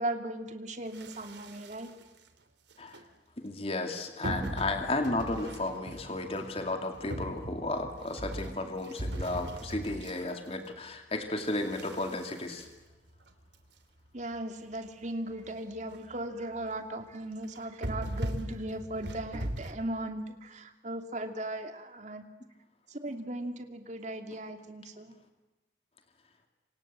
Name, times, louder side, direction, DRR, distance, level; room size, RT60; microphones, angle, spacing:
voice 1, 0.0-1.9 14.1-22.2 22.9-25.2, right 1 dB, 40° right, 6 dB, 2.7 m, -37 dB
sound 1, 0.9-2.2 2.7-3.0 4.2-11.0 11.4-13.6 14.1-14.2 14.3-14.4 14.9-15.0 15.3-15.5 15.8-16.2 16.6-16.8 17.4-19.7, right 1 dB, 80° right, 2.9 m, -39 dB
voice 2, 3.4-12.7, left 2 dB, 35° left, 5 dB, 2.5 m, -33 dB
27.5 x 26.0 x 7.6 m, 1.1 s
head